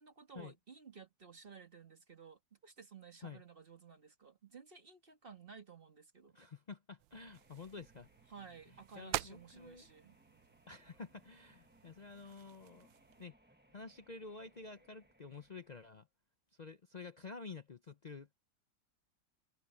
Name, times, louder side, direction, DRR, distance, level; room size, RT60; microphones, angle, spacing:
voice 1, 0.0-6.4 8.3-10.2, right 6 dB, 30° right, 1.8 m, -55 dB
voice 2, 6.3-8.1 9.0-9.9 10.7-12.9 13.2-13.3 13.7-16.1 16.6-18.3, left 4 dB, 75° left, 0.4 m, -50 dB
sound 1, 7.0-13.3, right 16 dB, 85° right, 1.3 m, -48 dB
sound 2, 7.2-15.9, right 1 dB, 5° right, 1.1 m, -69 dB
omnidirectional pair, 2.0 m